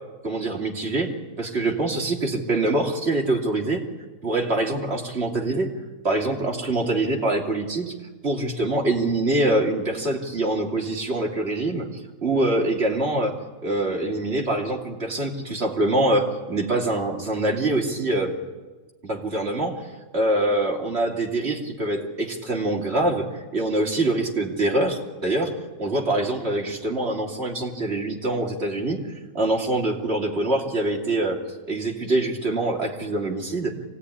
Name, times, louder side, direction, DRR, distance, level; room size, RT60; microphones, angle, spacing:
voice 1, 0.2-1.1 1.4-3.8 4.2-5.7 6.0-7.9 8.2-11.9 12.2-13.4 13.6-18.4 19.0-19.8 20.1-23.3 23.5-25.5 25.8-29.0 29.3-31.4 31.7-33.7, right 2 dB, 35° right, 0 dB, 3.1 m, -24 dB
24.5 x 17.0 x 9.9 m, 1.3 s
omnidirectional pair, 1.8 m